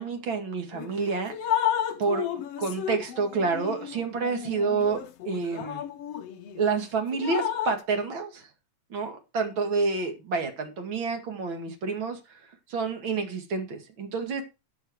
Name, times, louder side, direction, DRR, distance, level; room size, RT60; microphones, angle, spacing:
voice 1, 0.0-1.3 2.0-2.3 2.6-5.8 6.6-8.5 8.9-12.4 12.7-14.4, right 4 dB, 45° right, 2.6 m, -29 dB
Drip, 0.7-0.9 1.3-6.7 7.1-7.8, left 10 dB, 65° left, 1.9 m, -32 dB
13.5 x 7.4 x 4.7 m
omnidirectional pair, 3.4 m